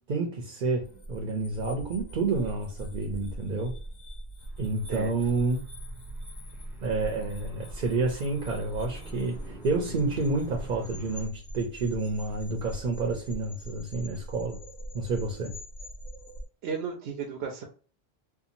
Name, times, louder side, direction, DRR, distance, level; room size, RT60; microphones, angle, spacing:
voice 1, 0.1-3.7 4.6-5.6 6.8-14.6 14.9-15.5, right 3 dB, 55° right, 0.7 m, -29 dB
sound 1, 0.8-16.4, right 1 dB, 75° left, 1.1 m, -42 dB
Car, 4.4-11.3, equal, ahead, 0.6 m, -46 dB
voice 2, 16.6-17.6, right 6 dB, 85° right, 0.8 m, -34 dB
2.8 x 2.3 x 2.5 m
omnidirectional pair, 1.1 m